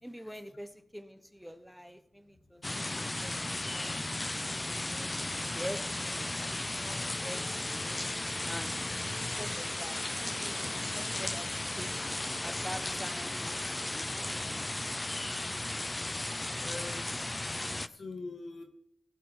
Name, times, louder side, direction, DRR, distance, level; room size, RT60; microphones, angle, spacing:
voice 1, 0.0-4.0 4.6-8.0 8.4-8.7 9.4-10.0 10.3-14.8, equal, ahead, 9 dB, 1.2 m, -46 dB
sound 1, 2.6-17.9, left 2 dB, 30° left, 0.6 m, -35 dB
sound 2, 7.1-15.7, left 5 dB, 85° left, 1.4 m, -55 dB
voice 2, 16.6-17.2 17.6-18.6, left 3 dB, 70° left, 5 dB, 2.0 m, -44 dB
16.0 x 5.9 x 6.5 m, 0.74 s
cardioid pair, 45°, 0 cm